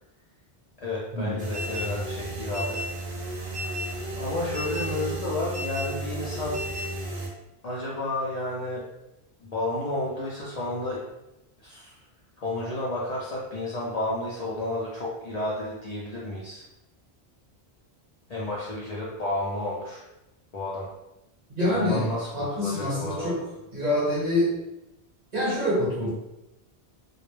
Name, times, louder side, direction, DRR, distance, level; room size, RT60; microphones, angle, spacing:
voice 1, 0.8-2.8 3.6-3.9 4.2-6.6 7.6-8.8 9.4-11.0 11.6-12.0 12.4-16.6 18.3-20.0 20.5-20.9 21.7-23.3, left 2 dB, 50° left, -7 dB, 0.5 m, -31 dB
sound 1, 1.4-7.3, right 1 dB, 75° right, 0.8 m, -33 dB
voice 2, 21.6-23.4 23.7-24.6 25.3-26.1, left 1 dB, 40° right, -7 dB, 0.9 m, -26 dB
2.2 x 2.0 x 3.0 m, 0.92 s
omnidirectional pair, 1.1 m